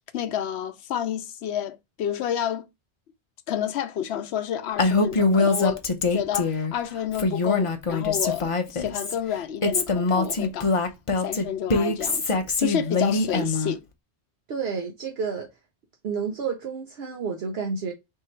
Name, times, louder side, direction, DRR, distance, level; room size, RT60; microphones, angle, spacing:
voice 1, 0.1-2.7 3.5-5.8 6.1-10.8 11.2-13.8, left 9 dB, 75° left, 0.8 m, -29 dB
Female speech woman speaking, 4.8-6.7 7.1-9.1 9.6-13.7, left 3 dB, 35° left, 0.6 m, -23 dB
voice 2, 14.5-15.5 16.0-17.9, right 5 dB, 70° right, 0.9 m, -30 dB
3.7 x 2.8 x 4.3 m
omnidirectional pair, 1.1 m